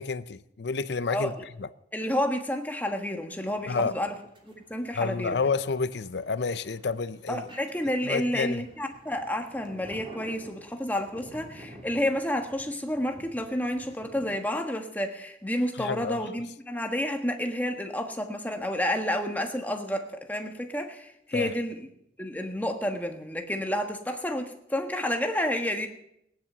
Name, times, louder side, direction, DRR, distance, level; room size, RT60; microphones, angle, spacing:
voice 1, 0.0-1.7 3.7-3.9 4.9-7.4 8.1-8.6 15.8-16.2 21.3-21.5, left 4 dB, 80° left, 0.6 m, -29 dB
voice 2, 1.9-4.1 4.4-5.4 7.3-21.9 22.2-25.9, left 1 dB, 10° left, 1.4 m, -30 dB
sound 1, 3.3-14.3, equal, 30° right, 2.8 m, -51 dB
17.5 x 10.5 x 6.7 m
head